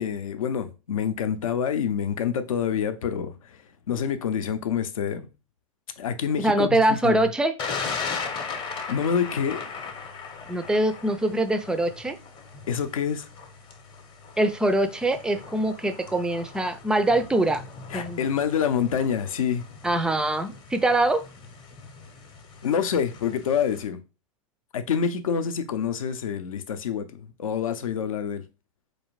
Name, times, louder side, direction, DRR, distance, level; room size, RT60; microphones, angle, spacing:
voice 1, 0.0-3.6 3.9-5.3 6.0-7.3 8.9-9.6 12.7-13.3 17.9-19.6 22.6-24.0 24.7-28.4, left 7 dB, 75° left, 0.6 m, -27 dB
voice 2, 6.4-7.5 10.5-12.2 14.4-17.6 17.9-18.2 19.8-21.2, right 1 dB, 5° right, 0.3 m, -23 dB
Thunder, 7.6-23.8, left 5 dB, 25° left, 0.8 m, -38 dB
4.6 x 2.5 x 3.1 m
hypercardioid pair, 110°, 18 cm